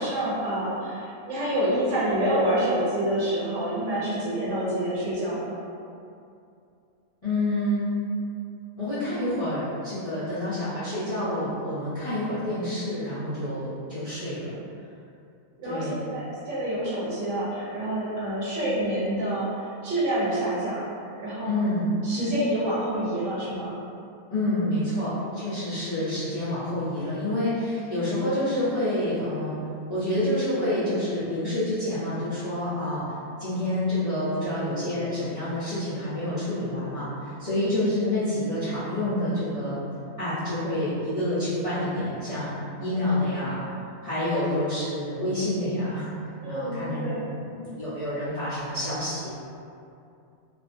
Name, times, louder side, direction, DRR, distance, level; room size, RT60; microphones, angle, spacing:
voice 1, 0.0-5.6 15.6-20.8 21.2-21.5 22.0-23.8 37.5-37.8 46.4-47.2, right 1 dB, 60° right, -9 dB, 1.0 m, -27 dB
voice 2, 7.2-7.9 8.8-14.5 15.6-16.0 21.4-21.9 24.3-29.6 29.9-33.0 33.4-39.9 40.2-42.5 42.8-43.6 44.0-46.1 46.5-47.1 47.4-49.3, left 1 dB, 40° left, -15 dB, 0.5 m, -28 dB
2.6 x 2.4 x 2.5 m, 2.6 s
omnidirectional pair, 1.5 m